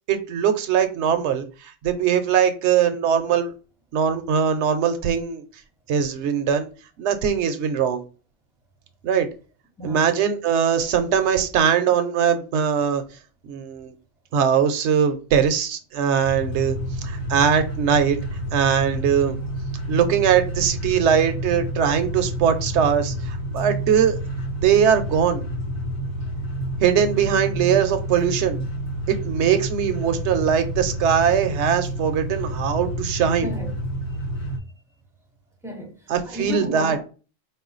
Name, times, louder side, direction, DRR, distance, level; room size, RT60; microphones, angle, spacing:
voice 1, 0.1-3.5 3.9-5.4 5.9-6.7 7.0-8.0 9.0-9.3 9.8-13.0 13.5-13.9 14.3-18.2 18.5-19.4 19.9-24.2 24.6-25.5 26.8-28.6 29.1-33.5 36.1-37.0, right 8 dB, 65° right, 0.8 m, -21 dB
sound 1, 16.2-34.6, right 1 dB, 75° left, 1.6 m, -29 dB
voice 2, 33.4-33.7 35.6-37.0, right 2 dB, 5° right, 0.4 m, -33 dB
4.3 x 2.2 x 3.8 m
omnidirectional pair, 1.4 m